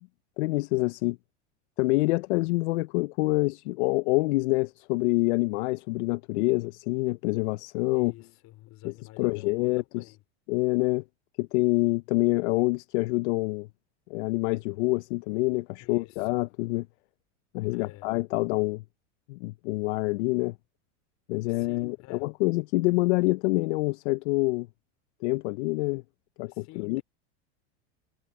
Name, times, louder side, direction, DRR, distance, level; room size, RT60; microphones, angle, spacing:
voice 1, 0.4-1.2 1.8-8.1 8.8-10.0 10.5-11.0 11.4-13.7 14.1-16.9 17.5-18.8 19.3-20.5 21.3-24.7 25.2-26.0 26.4-27.0, left 24 dB, 70° left, 0.6 m, -26 dB
voice 2, 7.9-10.2 15.8-16.4 17.7-18.1 21.5-22.2 26.5-27.0, left 18 dB, 50° left, 3.5 m, -50 dB
supercardioid pair, 115°, 35 cm